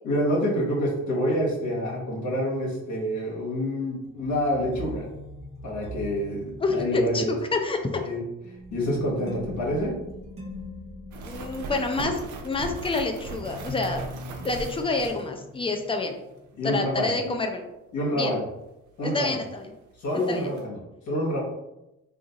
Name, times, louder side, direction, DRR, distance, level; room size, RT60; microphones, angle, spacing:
voice 1, 0.0-5.1 5.6-7.3 8.0-8.2 8.7-10.0 16.6-17.1 17.9-18.4 19.0-19.4 20.0-20.8 21.1-21.4, equal, 70° left, -4 dB, 1.2 m, -27 dB
sound 1, 1.6-16.9 17.2-17.4, left 1 dB, 20° right, 0.8 m, -42 dB
voice 2, 6.6-8.0 11.2-14.1 14.4-16.2 16.6-17.6 18.1-18.3 19.0-19.7 20.3-20.5, left 3 dB, 20° left, 4 dB, 0.5 m, -28 dB
sound 2, 11.1-15.8 16.0-16.1 19.1-19.2 19.6-19.7 20.0-20.7, right 3 dB, 75° right, 0.6 m, -38 dB
2.5 x 2.5 x 3.9 m, 0.93 s
cardioid pair, 90°, 30 cm